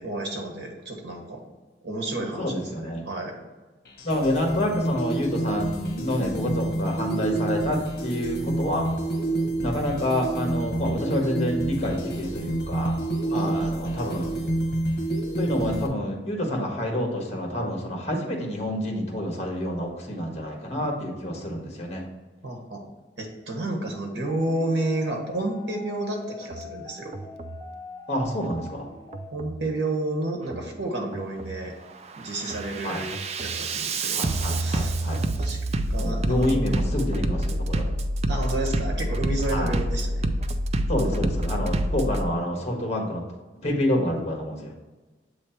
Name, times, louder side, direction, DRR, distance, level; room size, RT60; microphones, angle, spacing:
voice 1, 0.0-1.4 1.8-3.4 13.3-14.1 22.4-22.8 23.2-27.1 29.3-31.7 32.2-33.1 33.4-34.2 34.5-35.0 35.4-35.6 35.9-36.8 38.3-40.3, right 2 dB, 85° right, 1 dB, 1.5 m, -31 dB
voice 2, 2.4-3.0 4.0-8.8 9.6-13.0 13.3-14.3 15.4-22.0 28.1-28.9 32.8-33.0 34.1-35.2 36.0-38.0 39.5-39.7 40.9-43.2 43.6-44.7, left 1 dB, 40° left, 1 dB, 1.4 m, -28 dB
sound 1, 3.9-15.9, right 2 dB, 60° left, 1.1 m, -28 dB
sound 2, 24.3-29.3, left 4 dB, 20° left, 0.9 m, -43 dB
Bass drum, 26.4-26.7 27.1-27.6 28.4-28.7 29.1-29.6 30.4-30.7 31.1-31.6 32.0-42.2, right 1 dB, 35° right, 0.4 m, -27 dB
7.6 x 3.2 x 4.4 m, 1.2 s
head